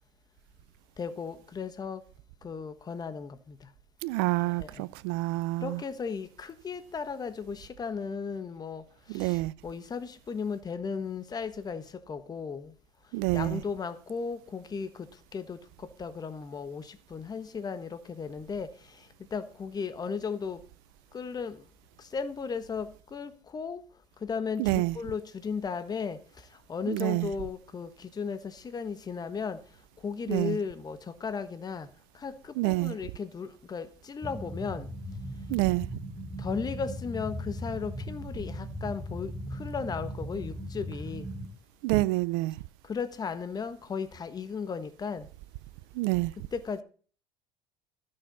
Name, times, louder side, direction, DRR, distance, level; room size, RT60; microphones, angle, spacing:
voice 1, 1.0-2.0 2.4-3.6 4.6-4.9 5.6-8.8 9.1-12.7 13.3-14.9 15.3-15.6 16.0-18.7 19.3-20.6 21.1-21.6 22.1-23.8 24.2-26.2 26.7-29.6 30.0-31.9 32.2-34.9 36.4-41.3 42.9-45.3 46.5-46.8, left 5 dB, 30° left, 1.3 m, -35 dB
voice 2, 4.0-5.8 9.1-9.5 13.1-13.6 24.6-25.0 26.9-27.3 30.3-30.6 32.6-33.0 35.5-35.9 41.8-42.6 45.9-46.3, right 21 dB, 70° right, 0.5 m, -27 dB
sound 1, 34.2-41.5, equal, ahead, 4.5 m, -38 dB
13.5 x 6.7 x 4.1 m
hypercardioid pair, 80°, 14 cm